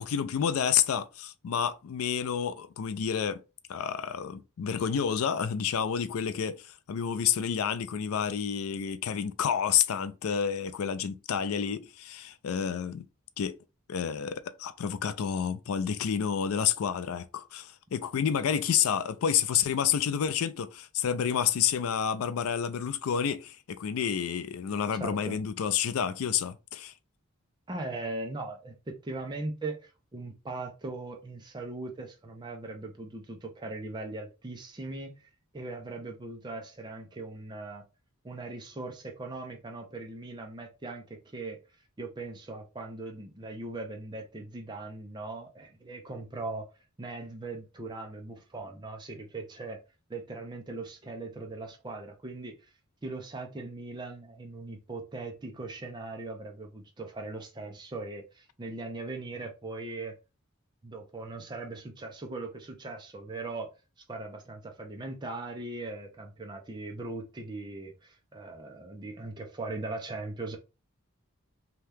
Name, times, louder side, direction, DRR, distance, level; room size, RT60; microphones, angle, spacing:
voice 1, 0.0-3.4 3.7-13.0 13.4-13.6 13.9-26.9, left 8 dB, 80° left, 0.4 m, -29 dB
voice 2, 25.0-25.4 27.7-37.8 38.2-41.6 42.0-46.7 47.0-49.8 50.1-52.7 53.0-60.1 60.8-63.7 64.1-70.6, right 2 dB, 20° right, 0.5 m, -39 dB
2.8 x 2.2 x 3.3 m
head